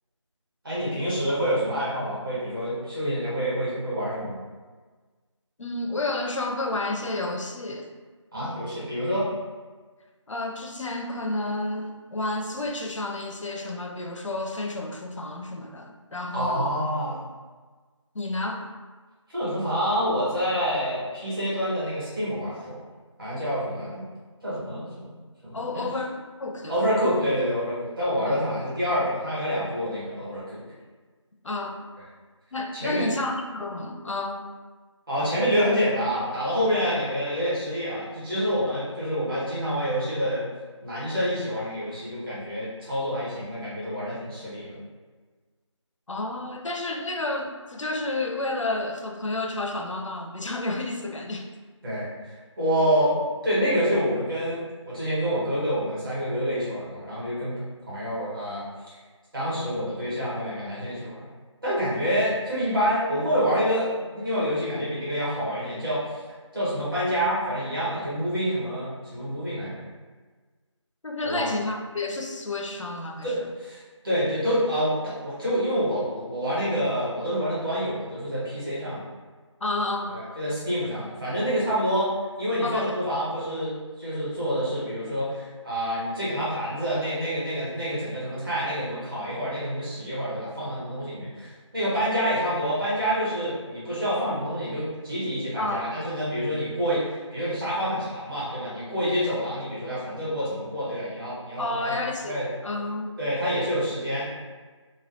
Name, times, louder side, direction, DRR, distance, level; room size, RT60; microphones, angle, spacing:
voice 1, 0.6-4.4 8.3-9.3 16.3-17.2 19.3-22.8 23.2-24.0 24.4-25.1 25.4-25.8 26.7-30.6 32.8-33.1 35.1-40.4 40.8-44.8 51.8-53.2 53.4-57.6 57.8-58.6 59.3-61.3 61.6-66.2 66.5-69.8 71.2-71.5 73.2-79.0 80.1-82.1 82.4-102.0 102.2-102.5 103.2-104.2, equal, 45° right, -10 dB, 1.5 m, -27 dB
voice 2, 5.6-7.9 10.3-16.8 18.1-18.7 25.5-26.8 28.3-28.4 31.4-31.9 32.5-34.5 46.1-51.5 71.0-73.4 79.6-80.2 82.6-82.9 95.6-95.8 101.6-103.2, left 2 dB, 75° left, 2 dB, 0.5 m, -30 dB
3.2 x 2.2 x 2.6 m, 1.4 s
figure-of-eight pair, 170°, 16 cm